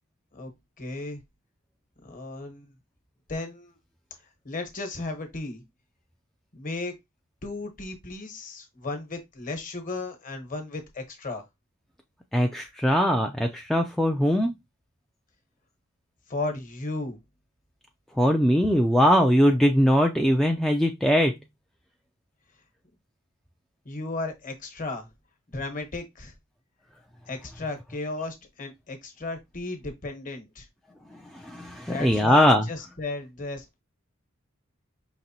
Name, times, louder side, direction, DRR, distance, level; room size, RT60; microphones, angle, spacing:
voice 1, 0.8-1.2 2.0-2.7 3.3-3.8 4.4-5.6 6.5-6.9 7.4-11.5 16.3-17.2 23.8-25.1 25.5-26.3 27.3-30.7 31.8-33.6, left 2 dB, 40° left, 1.2 m, -35 dB
voice 2, 12.3-14.5 18.2-21.3 31.3-32.7, equal, ahead, 0.4 m, -21 dB
5.2 x 3.1 x 2.8 m
head